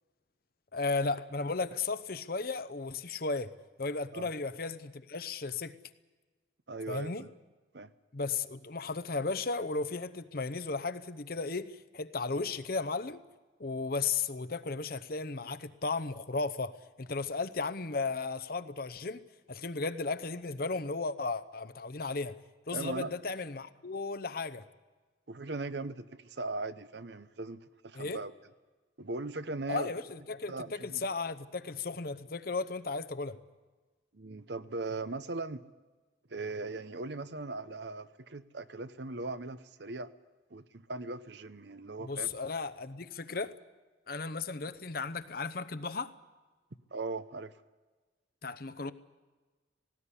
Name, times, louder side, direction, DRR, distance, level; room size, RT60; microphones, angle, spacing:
voice 1, 0.7-3.5 3.8-5.8 6.9-7.2 8.1-13.2 13.6-19.2 19.5-22.4 22.7-24.6 27.9-28.2 29.7-33.4 42.0-43.5 44.1-46.1 48.4-48.9, left 4 dB, 50° left, 0.8 m, -35 dB
voice 2, 6.7-7.3 7.7-7.9 22.7-23.1 25.3-28.3 29.0-29.9 30.5-31.0 34.1-35.6 36.3-40.1 40.5-42.3 46.9-47.5, right 3 dB, 65° right, 0.8 m, -39 dB
18.5 x 17.5 x 9.9 m
head